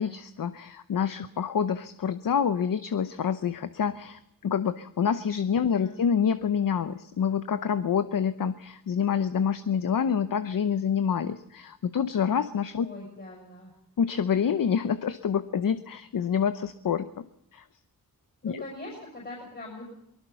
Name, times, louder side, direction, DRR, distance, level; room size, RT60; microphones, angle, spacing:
voice 1, 0.0-12.9 14.0-17.2 17.5-17.6 18.4-18.6, left 7 dB, 65° left, 11 dB, 0.8 m, -27 dB
voice 2, 5.6-6.0 12.8-13.7 18.4-19.8, left 2 dB, 30° left, -2 dB, 6.4 m, -42 dB
23.5 x 20.0 x 5.7 m, 0.82 s
wide cardioid pair, 110°, 37 cm